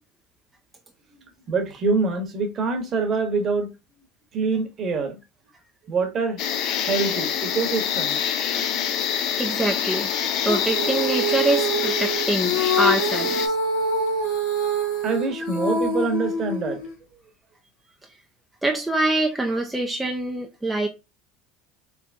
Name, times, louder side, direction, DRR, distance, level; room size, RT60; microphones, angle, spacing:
voice 1, 1.5-3.7 4.3-5.1 5.9-6.4 6.9-8.2 15.0-16.8, right 4 dB, 40° right, 1.1 m, -25 dB
sound 1, 6.4-13.5, left 8 dB, 60° left, 0.6 m, -26 dB
voice 2, 9.4-10.1 10.4-13.6 18.6-20.9, right 2 dB, 10° right, 0.5 m, -25 dB
Female singing, 10.4-16.9, right 1 dB, 85° left, 1.3 m, -25 dB
3.5 x 2.9 x 2.6 m
supercardioid pair, 90°, 0 cm